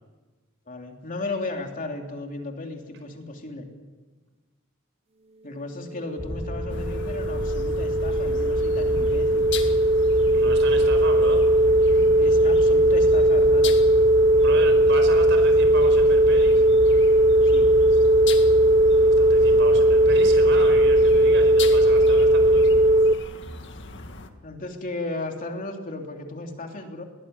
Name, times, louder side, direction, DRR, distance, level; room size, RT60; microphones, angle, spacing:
voice 1, 0.7-3.6 5.4-9.5 12.2-13.8 17.4-17.7 24.4-27.0, left 2 dB, 40° left, 2 dB, 3.1 m, -35 dB
sound 1, 6.1-23.1, right 1 dB, 30° right, 0.8 m, -18 dB
sound 2, 6.2-22.9, left 1 dB, 25° left, 1.5 m, -33 dB
sound 3, 6.7-24.3, left 4 dB, 60° left, 2.0 m, -40 dB
voice 2, 10.3-11.5 14.4-16.6 18.9-22.7, right 3 dB, 60° right, 6 dB, 5.1 m, -34 dB
21.5 x 18.5 x 9.5 m, 1.3 s
head